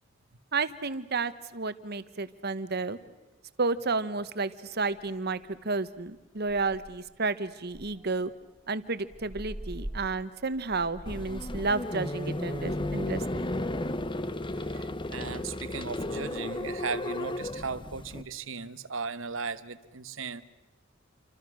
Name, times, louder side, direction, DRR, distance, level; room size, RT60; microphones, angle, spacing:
voice 1, 0.5-3.0 3.6-8.3 8.7-13.5, right 3 dB, 55° right, 13 dB, 1.2 m, -31 dB
sound 1, 5.0-5.1 5.5-5.7 6.1-6.2 6.4-7.1 7.7-11.9, equal, 20° right, 1.7 m, -42 dB
sound 2, 11.1-18.2, left 1 dB, 25° left, 0.9 m, -34 dB
voice 2, 14.6-20.4, right 4 dB, 85° right, 14 dB, 1.2 m, -37 dB
29.0 x 25.5 x 6.4 m, 1.2 s
head